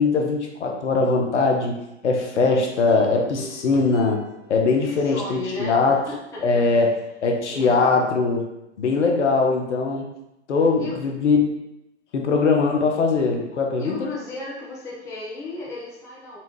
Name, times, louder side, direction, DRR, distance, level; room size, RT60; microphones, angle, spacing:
voice 1, 0.0-1.7 2.0-4.2 4.5-6.0 6.4-6.9 7.2-8.5 8.8-10.0 10.5-11.4 12.1-14.1, left 4 dB, 65° left, 1 dB, 0.8 m, -21 dB
sound 1, 2.3-5.6 6.1-6.2, right 2 dB, 25° right, 1.1 m, -44 dB
voice 2, 4.8-6.8 7.5-8.0 10.8-11.0 13.8-16.4, left 2 dB, 10° left, -5 dB, 0.5 m, -34 dB
4.2 x 2.4 x 3.0 m, 0.89 s
figure-of-eight pair, 115°, 37 cm